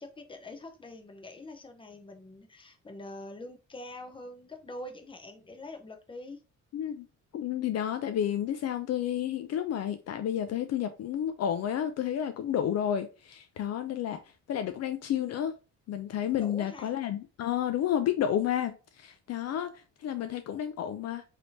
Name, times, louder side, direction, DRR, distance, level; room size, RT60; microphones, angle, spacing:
voice 1, 0.0-6.4 16.3-16.9, left 2 dB, 15° left, 0.7 m, -44 dB
voice 2, 6.7-7.1 7.3-14.2 14.5-15.5 15.9-19.7 20.0-21.2, left 10 dB, 60° left, 0.4 m, -31 dB
3.3 x 2.8 x 2.6 m
cardioid pair, 90°, 30 cm